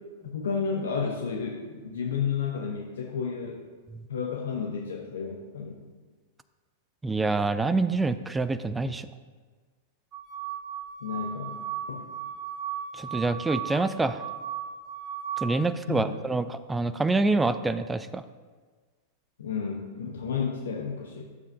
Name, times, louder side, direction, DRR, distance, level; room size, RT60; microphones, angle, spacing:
voice 1, 0.2-3.6 4.1-5.7 11.0-11.6 11.9-12.0 15.9-16.0 19.4-21.2, left 6 dB, 70° left, 1 dB, 0.8 m, -31 dB
voice 2, 7.0-9.1 12.9-14.2 15.4-18.2, right 3 dB, 10° right, 12 dB, 0.4 m, -26 dB
sound 1, 10.1-15.5, right 9 dB, 30° right, 1.3 m, -36 dB
11.0 x 7.3 x 2.7 m, 1.5 s
figure-of-eight pair, 100°, 0 cm